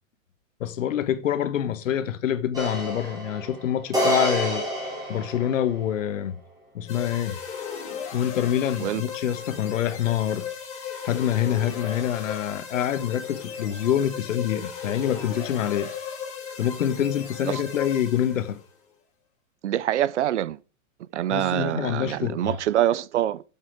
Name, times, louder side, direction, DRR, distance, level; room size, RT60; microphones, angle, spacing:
voice 1, 0.6-4.6 5.1-6.4 6.7-7.4 8.1-10.5 11.0-15.9 16.6-18.6 21.3-22.6, left 10 dB, 70° left, 1.3 m, -26 dB
sound 1, 2.5-5.9, equal, 10° right, 3.0 m, -28 dB
sound 2, 6.9-18.6, left 7 dB, 15° left, 2.0 m, -36 dB
voice 2, 19.6-20.6 21.1-23.4, right 12 dB, 60° right, 0.6 m, -25 dB
7.9 x 7.4 x 5.0 m
hypercardioid pair, 170°, 41 cm